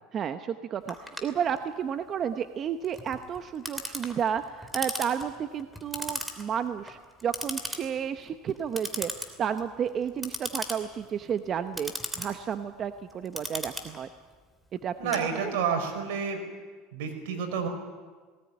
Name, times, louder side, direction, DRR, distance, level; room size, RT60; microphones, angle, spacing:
voice 1, 0.1-9.1 9.4-14.1 14.8-15.5, right 8 dB, 35° right, 9 dB, 0.9 m, -32 dB
Clock, 0.9-15.8, equal, ahead, 3.2 m, -39 dB
voice 2, 15.0-16.4 16.9-17.7, right 6 dB, 85° right, 4 dB, 5.2 m, -29 dB
19.5 x 19.0 x 9.7 m, 1.4 s
supercardioid pair, 125°, 0 cm